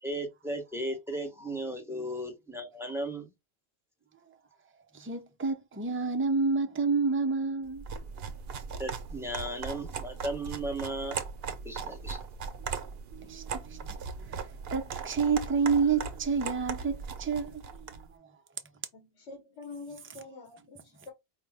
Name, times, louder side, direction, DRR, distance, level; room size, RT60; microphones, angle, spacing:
voice 1, 0.0-3.3 8.8-11.2 11.6-12.2, right 1 dB, ahead, 0.9 m, -35 dB
voice 2, 4.9-7.8 12.6-12.7 13.1-14.0 14.3-17.9, right 5 dB, 20° right, 0.3 m, -29 dB
sound 1, 7.7-18.1, right 5 dB, 65° right, 0.8 m, -39 dB
voice 3, 18.9-21.1, left 3 dB, 90° left, 1.3 m, -46 dB
4.8 x 2.1 x 3.4 m
omnidirectional pair, 1.1 m